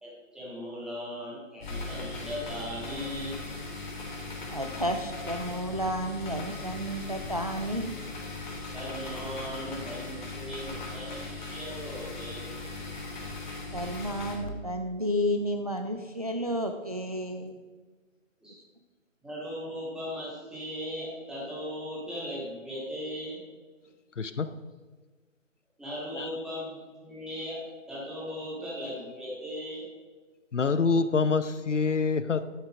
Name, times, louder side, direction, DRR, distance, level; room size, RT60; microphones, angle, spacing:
voice 1, 0.0-3.4 8.7-12.7 18.4-18.6 19.2-23.4 25.8-27.6 27.9-29.9, equal, ahead, -7 dB, 1.9 m, -38 dB
sound 1, 1.6-14.3, left 3 dB, 35° left, 3.4 m, -39 dB
voice 2, 4.5-7.9 13.7-17.6, equal, 30° right, 5 dB, 0.4 m, -31 dB
voice 3, 24.2-24.5 26.1-26.4 30.5-32.4, left 4 dB, 65° left, 12 dB, 0.7 m, -26 dB
11.5 x 7.8 x 5.1 m, 1.4 s
figure-of-eight pair, 140°, 40 cm